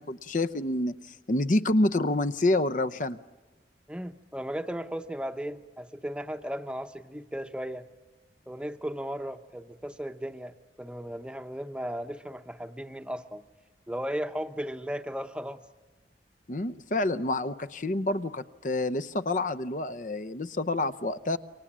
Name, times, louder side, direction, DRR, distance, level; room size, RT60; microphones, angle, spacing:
voice 1, 0.0-3.2 16.5-21.4, left 2 dB, 45° left, 10 dB, 0.7 m, -28 dB
voice 2, 3.9-7.9 8.5-13.4 13.9-15.6, equal, 5° right, 9 dB, 0.9 m, -36 dB
29.0 x 24.5 x 7.4 m, 1.3 s
head